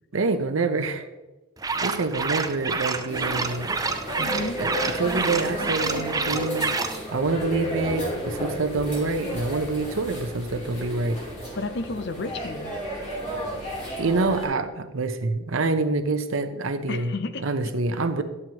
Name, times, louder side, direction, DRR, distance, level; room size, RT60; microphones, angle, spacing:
voice 1, 0.1-1.1 1.8-3.7 4.6-6.7 7.1-11.2 14.0-17.1 17.4-18.2, right 3 dB, 85° right, 8 dB, 0.7 m, -26 dB
sound 1, 1.6-7.0, right 4 dB, 20° right, 0.4 m, -28 dB
sound 2, 3.1-14.5, equal, 35° left, 3.2 m, -33 dB
voice 2, 4.2-4.6 11.5-12.7 16.9-17.7, left 3 dB, 55° left, 11 dB, 0.5 m, -32 dB
11.0 x 7.7 x 2.9 m, 1.1 s
head